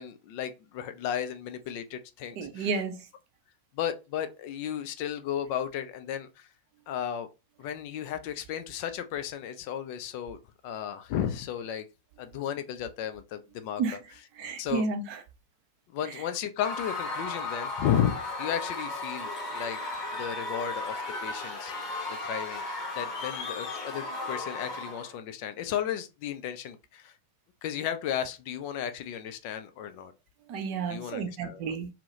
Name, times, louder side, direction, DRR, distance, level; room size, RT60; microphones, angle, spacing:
voice 1, 0.0-2.7 3.7-6.5 6.9-7.3 7.6-10.4 10.6-11.9 12.2-13.8 14.6-14.8 15.9-19.8 20.1-21.7 22.2-27.1 27.6-30.1 30.9-31.8, left 9 dB, 45° left, 0.3 m, -34 dB
voice 2, 2.4-3.1 13.8-14.0 14.4-15.2 16.1-16.2 30.5-31.9, right 4 dB, 45° right, 0.5 m, -31 dB
Screaming / Cheering / Crowd, 16.6-25.1, left 2 dB, 25° left, 0.9 m, -35 dB
2.2 x 2.0 x 2.9 m
figure-of-eight pair, 90°, 0 cm